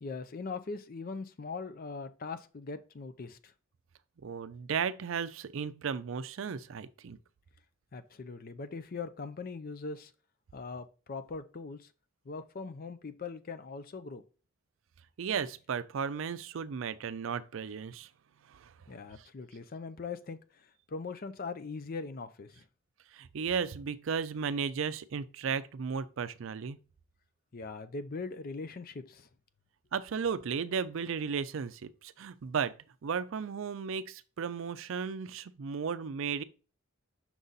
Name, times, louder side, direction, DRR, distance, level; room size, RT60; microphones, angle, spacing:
voice 1, 0.0-3.5 7.9-10.1 10.5-11.9 12.3-14.2 18.9-22.6 27.5-29.3, left 4 dB, 45° left, 0.5 m, -41 dB
voice 2, 4.2-7.2 15.2-18.1 18.5-18.7 19.2-19.3 23.1-26.8 29.9-32.8 33.0-36.4, right 6 dB, 70° right, 0.4 m, -35 dB
6.1 x 4.0 x 3.9 m
head